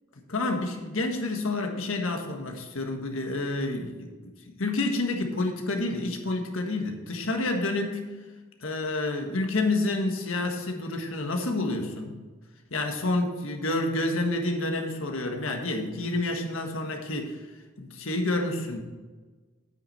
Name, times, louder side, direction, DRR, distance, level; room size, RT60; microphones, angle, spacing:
voice 1, 0.3-4.3 4.6-8.0 8.6-12.2 12.7-17.4 17.8-18.8, left 2 dB, 75° left, 3 dB, 1.5 m, -29 dB
9.3 x 8.8 x 4.3 m, 1.3 s
head